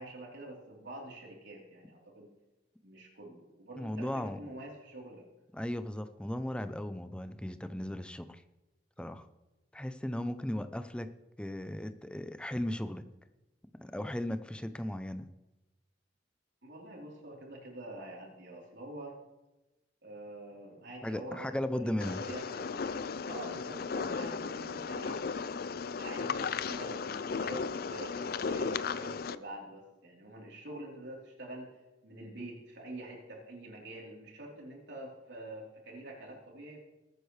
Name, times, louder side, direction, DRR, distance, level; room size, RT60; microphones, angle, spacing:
voice 1, 0.0-2.3 2.8-5.2 16.6-19.2 20.0-23.0 23.2-25.2 25.9-31.7 32.0-36.8, right 1 dB, 70° right, -2 dB, 3.7 m, -46 dB
voice 2, 3.8-4.4 5.5-8.4 9.0-9.3 9.7-11.1 11.4-13.1 13.7-15.3 21.0-22.2, left 1 dB, 5° left, 10 dB, 0.5 m, -36 dB
sound 1, 22.0-29.4, left 5 dB, 55° left, 0.4 m, -35 dB
21.5 x 9.4 x 3.3 m, 1.1 s
head